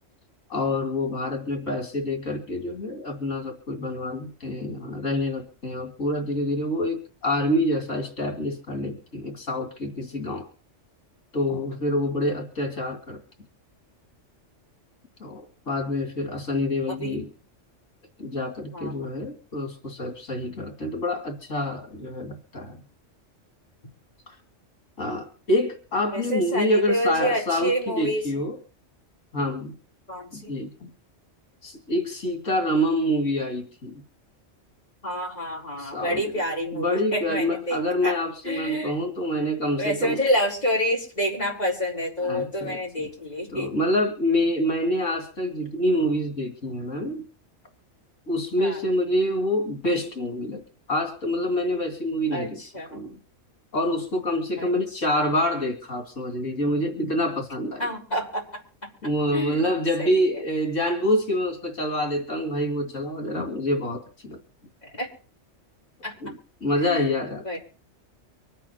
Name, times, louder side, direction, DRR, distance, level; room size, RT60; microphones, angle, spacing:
voice 1, 0.5-10.5 11.3-13.2 15.2-17.3 18.2-22.8 24.3-24.4 25.0-28.6 29.3-29.7 30.3-30.9 31.6-34.0 35.8-36.2 36.7-40.2 42.2-43.1 43.5-47.2 48.3-50.6 50.9-52.6 52.9-53.2 53.7-57.9 59.0-64.4 66.2-67.6, left 1 dB, 90° left, 3 dB, 2.8 m, -27 dB
voice 2, 16.9-17.2 18.7-19.1 26.1-28.3 30.1-30.5 35.0-38.2 38.4-39.0 39.8-43.7 44.9-45.0 48.6-48.8 52.3-53.1 54.6-54.7 57.8-58.6 59.3-59.6 60.0-60.4 65.0-65.1 66.0-66.1 66.8-67.1 67.4-67.6, equal, 35° left, -3 dB, 4.5 m, -28 dB
25.0 x 8.4 x 4.4 m, 0.41 s
omnidirectional pair, 1.3 m